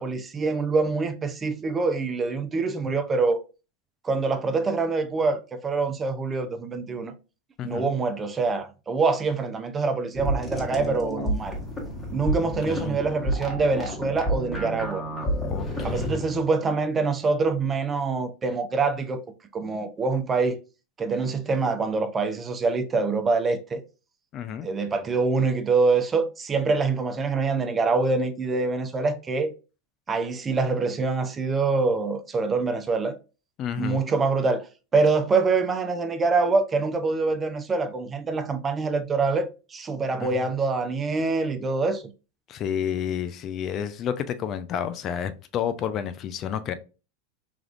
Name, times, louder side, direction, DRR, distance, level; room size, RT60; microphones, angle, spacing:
voice 1, 0.0-3.4 4.0-7.1 7.6-11.5 12.1-15.0 15.8-19.2 19.5-20.6 21.0-23.8 24.6-29.5 30.1-33.2 33.8-34.7 34.9-42.1, right 4 dB, 25° right, 0.4 m, -25 dB
voice 2, 7.6-7.9 12.7-13.0 15.5-16.4 24.3-24.7 33.6-34.0 40.2-40.5 42.5-46.7, left 9 dB, 40° left, 0.3 m, -30 dB
sound 1, 10.1-16.2, right 1 dB, 10° left, 1.0 m, -30 dB
3.4 x 2.3 x 2.4 m
hypercardioid pair, 95°, 0 cm